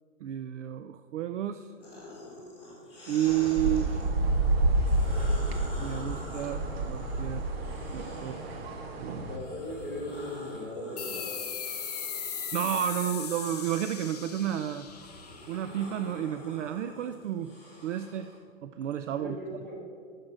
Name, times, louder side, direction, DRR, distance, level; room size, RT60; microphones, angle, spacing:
voice 1, 0.2-1.7 3.1-3.9 5.8-7.4 7.9-8.4 9.0-9.3 12.5-14.9 15.5-17.5 17.8-18.3 18.6-19.4, right 11 dB, 60° right, 10 dB, 0.5 m, -31 dB
sound 1, 1.8-4.1 4.6-8.7 9.2-18.4, left 1 dB, 5° right, 2.8 m, -47 dB
sound 2, 3.3-9.4, right 2 dB, 45° right, 1.1 m, -29 dB
voice 2, 9.2-11.3 19.1-19.7, left 1 dB, 20° right, -5 dB, 2.6 m, -38 dB
sound 3, 11.0-16.1, left 7 dB, 30° left, 0.5 m, -38 dB
10.5 x 6.6 x 6.0 m, 2.2 s
hypercardioid pair, 180°, 41 cm